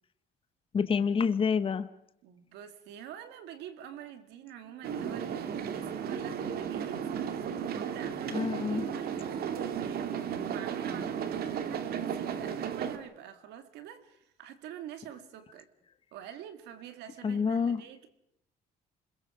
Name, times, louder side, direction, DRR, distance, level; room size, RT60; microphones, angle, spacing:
voice 1, 0.7-1.9 8.3-8.9 17.2-17.8, left 6 dB, 30° left, 1.1 m, -27 dB
voice 2, 2.2-10.1 10.5-15.7 16.1-18.1, right 10 dB, 85° right, 2.2 m, -47 dB
sound 1, 4.8-13.0, right 8 dB, 65° right, 2.1 m, -34 dB
28.5 x 21.5 x 5.0 m
cardioid pair, 110°, 17 cm